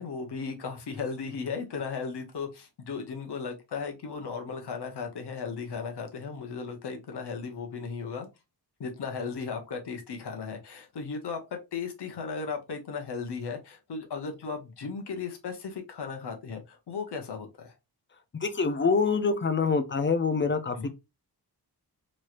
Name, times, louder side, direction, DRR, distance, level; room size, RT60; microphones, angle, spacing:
voice 1, 0.0-8.3 8.8-17.7 20.7-20.9, left 5 dB, 70° left, 0.9 m, -36 dB
voice 2, 18.3-20.9, left 4 dB, 30° left, 0.4 m, -25 dB
3.1 x 3.0 x 2.4 m
wide cardioid pair, 155°, 41 cm